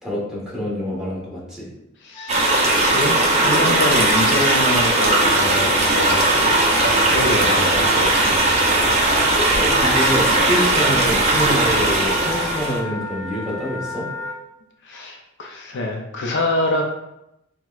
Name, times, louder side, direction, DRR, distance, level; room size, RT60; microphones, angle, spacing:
voice 1, 0.0-1.7 7.2-7.3 8.9-9.0 9.3-14.1, equal, 5° right, -6 dB, 1.1 m, -26 dB
voice 2, 2.0-8.6 14.8-16.8, left 1 dB, 60° left, 1 dB, 0.5 m, -26 dB
Wind instrument woodwind instrument, 2.1-14.3, left 2 dB, 15° left, 0.7 m, -33 dB
sound 1, 2.3-12.8, right 2 dB, 35° right, 0.6 m, -18 dB
5.8 x 2.2 x 2.4 m, 0.86 s
head